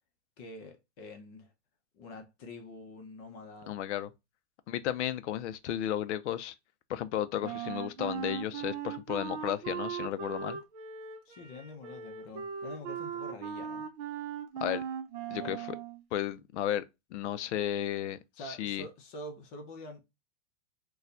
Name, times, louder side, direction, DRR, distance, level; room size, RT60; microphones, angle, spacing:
voice 1, 0.4-1.5 1.9-3.8 11.3-13.9 15.4-15.6 18.3-20.0, left 1 dB, 30° left, 0.7 m, -46 dB
voice 2, 3.7-4.1 4.7-6.5 6.9-10.6 14.6-14.8 15.3-15.8 16.1-16.8 17.1-18.9, left 11 dB, 70° left, 0.6 m, -33 dB
Wind instrument woodwind instrument, 7.4-16.0, right 7 dB, 35° right, 0.5 m, -38 dB
4.2 x 2.3 x 2.5 m
supercardioid pair, 160°, 36 cm